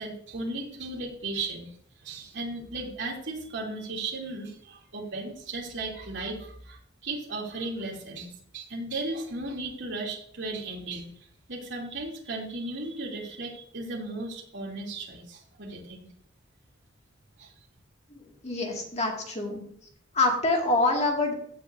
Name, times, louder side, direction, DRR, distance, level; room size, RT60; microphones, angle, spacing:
voice 1, 0.0-1.7 2.0-11.1 11.5-16.1 17.4-17.5, right 2 dB, 60° right, -2 dB, 3.0 m, -36 dB
voice 2, 18.4-19.6 20.1-21.3, left 2 dB, 35° left, 0 dB, 2.2 m, -25 dB
15.5 x 7.0 x 2.7 m, 0.64 s
head